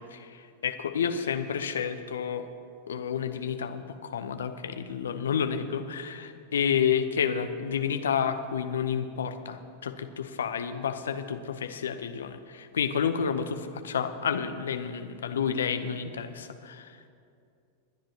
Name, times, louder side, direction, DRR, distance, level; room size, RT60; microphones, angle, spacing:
voice 1, 0.0-2.5 2.9-16.9, left 7 dB, 65° left, 9 dB, 0.7 m, -30 dB
27.0 x 10.0 x 2.9 m, 2.4 s
figure-of-eight pair, 90°, 0 cm